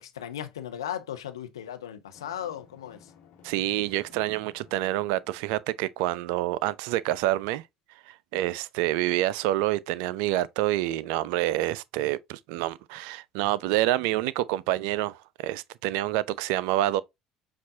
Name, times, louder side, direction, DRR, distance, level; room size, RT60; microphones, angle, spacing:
voice 1, 0.0-3.0, left 10 dB, 75° left, 0.6 m, -36 dB
Drum, 2.1-5.9, left 6 dB, 55° left, 1.1 m, -56 dB
voice 2, 3.4-7.6 8.1-17.0, right 15 dB, 60° right, 0.3 m, -27 dB
7.1 x 2.4 x 2.6 m
figure-of-eight pair, 60°, 3 cm